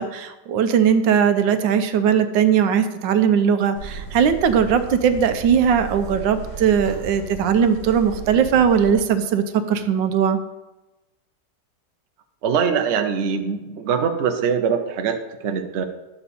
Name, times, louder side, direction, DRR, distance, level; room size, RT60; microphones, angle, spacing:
voice 1, 0.0-10.4, right 7 dB, 85° right, 10 dB, 1.4 m, -19 dB
sound 1, 3.7-8.9, right 4 dB, 70° left, 4.6 m, -35 dB
voice 2, 12.4-15.8, right 6 dB, 55° right, 6 dB, 0.8 m, -23 dB
11.0 x 6.9 x 4.2 m, 1.1 s
omnidirectional pair, 2.0 m